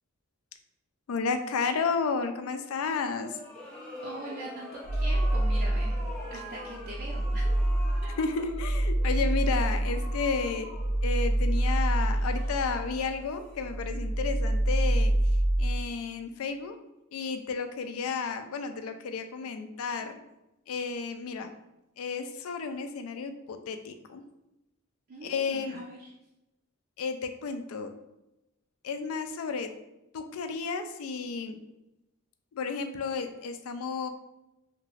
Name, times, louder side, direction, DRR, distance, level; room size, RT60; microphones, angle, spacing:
voice 1, 1.1-3.4 8.2-10.7 11.0-15.1 15.6-16.8 17.1-20.2 20.7-21.5 22.0-24.2 25.2-25.9 27.0-27.9 28.8-29.7 30.1-31.6 32.5-34.1, left 5 dB, 85° left, 8 dB, 0.4 m, -32 dB
sound 1, 3.1-14.1, left 1 dB, 5° left, 0.6 m, -46 dB
voice 2, 4.0-6.0 6.3-7.4 8.0-8.2 9.2-9.3 25.1-26.1, right 1 dB, 45° right, -3 dB, 0.4 m, -42 dB
sound 2, 4.8-6.3 6.7-13.2 13.5-15.8, right 1 dB, 45° left, 0.6 m, -27 dB
2.8 x 2.4 x 3.1 m, 0.91 s
head